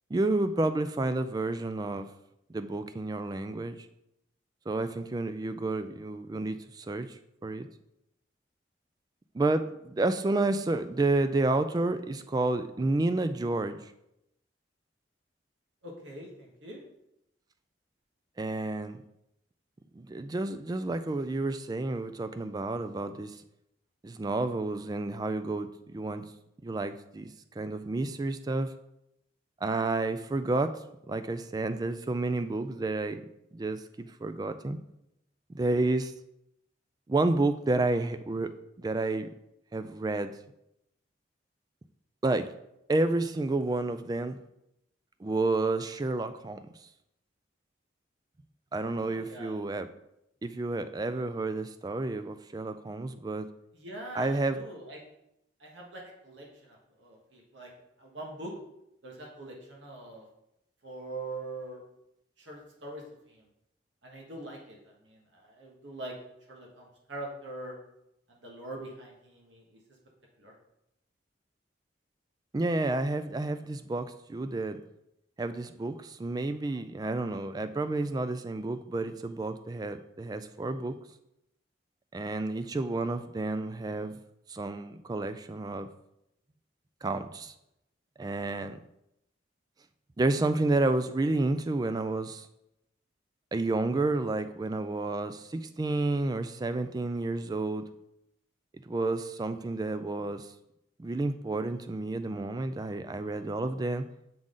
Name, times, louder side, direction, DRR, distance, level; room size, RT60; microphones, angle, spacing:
voice 1, 0.1-2.1 2.5-3.9 4.7-7.1 7.4-7.7 9.3-13.8 18.4-19.0 20.0-23.4 24.0-26.3 26.6-27.3 27.6-28.7 29.6-30.7 31.1-33.2 33.5-34.8 35.5-36.1 37.1-38.5 38.8-39.3 39.7-40.3 42.2-42.5 42.9-44.4 45.2-46.6 48.7-49.9 50.4-53.5 54.1-54.6 72.5-74.8 75.4-81.0 82.1-84.2 84.5-85.9 87.0-87.5 88.2-88.8 90.2-92.5 93.5-97.9 98.9-100.5 101.0-104.0, right 2 dB, 20° right, 10 dB, 0.3 m, -30 dB
voice 2, 15.8-16.8 49.0-49.6 53.7-55.0 55.6-57.7 58.0-58.5 59.0-60.3 60.8-61.8 62.4-63.4 64.0-66.2 66.5-67.8 68.3-69.8 70.4-70.5, right 2 dB, 85° right, -1 dB, 1.3 m, -43 dB
7.3 x 3.8 x 3.8 m, 0.82 s
head